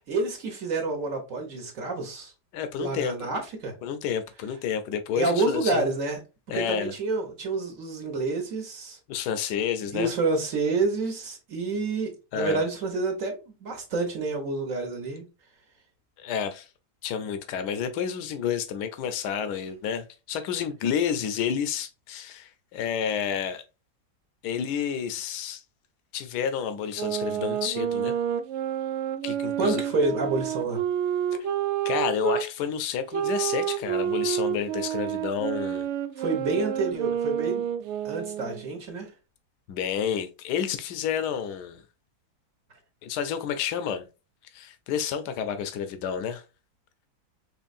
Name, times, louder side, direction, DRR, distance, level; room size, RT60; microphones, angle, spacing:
voice 1, 0.0-2.3 2.8-3.7 5.2-6.2 6.5-9.0 9.9-15.2 29.6-30.8 36.2-37.7 38.0-39.1, right 3 dB, 55° right, 1.3 m, -28 dB
voice 2, 2.5-3.3 3.8-5.9 6.5-6.9 9.1-10.1 12.3-12.6 16.2-16.7 17.0-23.6 24.4-25.6 26.1-28.1 29.2-29.8 31.8-35.9 39.7-41.8 43.0-44.1 44.5-46.4, left 8 dB, 80° left, 1.2 m, -30 dB
sound 1, 26.9-32.5 33.1-38.7, right 10 dB, 80° right, 0.6 m, -29 dB
4.4 x 3.1 x 2.4 m
omnidirectional pair, 1.8 m